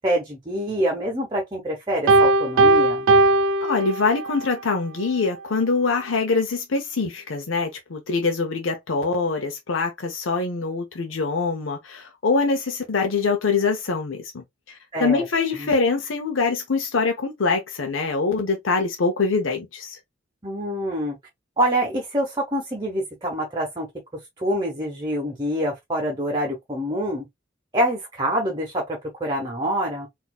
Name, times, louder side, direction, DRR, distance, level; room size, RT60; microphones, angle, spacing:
voice 1, 0.0-3.1 14.9-15.2 15.6-15.7 20.4-21.2 21.6-23.9 24.4-27.3 27.7-30.1, equal, 25° right, 0.9 m, -26 dB
Piano, 2.1-4.5, right 2 dB, 80° right, 0.4 m, -18 dB
voice 2, 3.6-20.0, left 4 dB, 90° left, 0.7 m, -24 dB
4.1 x 2.6 x 2.3 m
head